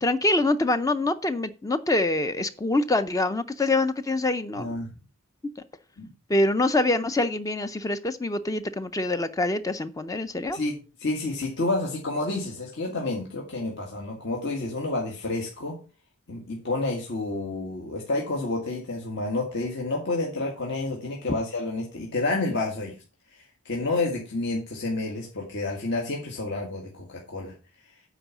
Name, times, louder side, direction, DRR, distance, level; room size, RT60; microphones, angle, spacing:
voice 1, 0.0-4.7 6.3-10.6, left 2 dB, 15° left, 11 dB, 0.4 m, -25 dB
voice 2, 4.5-4.9 6.0-6.1 10.5-10.7 11.0-15.8 16.3-22.9 23.3-27.5, left 2 dB, 55° left, -1 dB, 1.9 m, -29 dB
9.1 x 4.8 x 7.1 m, 0.34 s
head